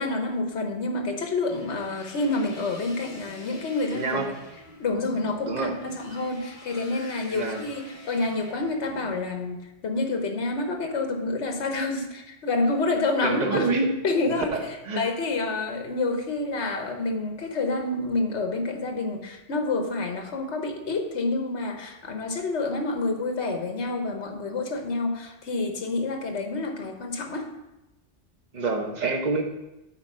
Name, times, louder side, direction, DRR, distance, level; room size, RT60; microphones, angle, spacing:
voice 1, 0.0-4.3 4.8-13.7 14.0-14.5 14.9-27.5, left 3 dB, 65° left, 5 dB, 1.3 m, -28 dB
sound 1, 1.4-9.1, left 1 dB, 30° left, 1.2 m, -47 dB
voice 2, 3.9-4.3 5.5-5.8 7.3-7.6 13.2-13.9 14.2-15.0 28.5-29.4, right 3 dB, 40° right, 3 dB, 1.0 m, -27 dB
8.9 x 4.1 x 5.5 m, 0.95 s
omnidirectional pair, 1.2 m